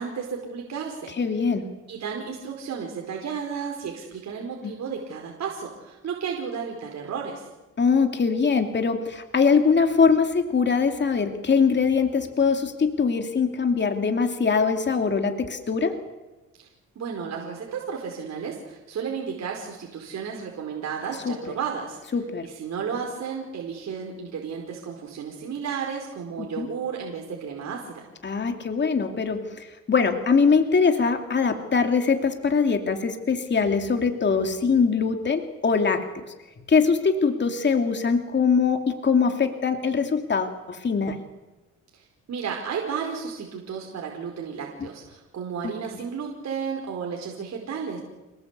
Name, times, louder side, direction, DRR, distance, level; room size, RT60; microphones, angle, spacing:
voice 1, 0.0-1.1 1.9-7.5 16.9-22.0 22.4-28.0 41.9-48.0, right 6 dB, 60° right, 0 dB, 4.9 m, -33 dB
voice 2, 1.2-1.7 4.6-4.7 7.8-16.0 21.2-21.4 22.1-22.5 26.4-26.7 28.2-36.1 36.7-41.2 45.6-45.7, left 5 dB, 35° left, 5 dB, 2.9 m, -22 dB
28.5 x 19.5 x 8.4 m, 1.1 s
cardioid pair, 90°, 30 cm